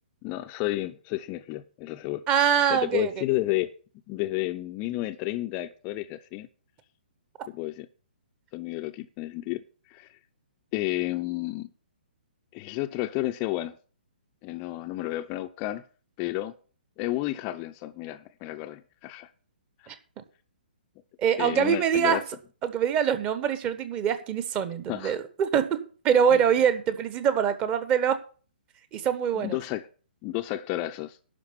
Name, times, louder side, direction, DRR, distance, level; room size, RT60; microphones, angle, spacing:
voice 1, 0.2-2.2 2.7-3.7 4.1-6.5 7.5-7.9 8.5-9.6 9.9-10.1 10.7-11.7 12.5-13.8 14.4-15.8 16.2-16.5 17.0-19.3 19.8-19.9 21.4-22.2 24.9-25.2 29.4-29.9 30.2-31.2, left 17 dB, 25° left, 0.6 m, -31 dB
voice 2, 2.3-3.2 19.9-20.2 21.2-22.2 22.6-28.2 28.9-29.6, right 8 dB, 20° right, 1.1 m, -24 dB
11.5 x 5.0 x 8.5 m
figure-of-eight pair, 125°, 5 cm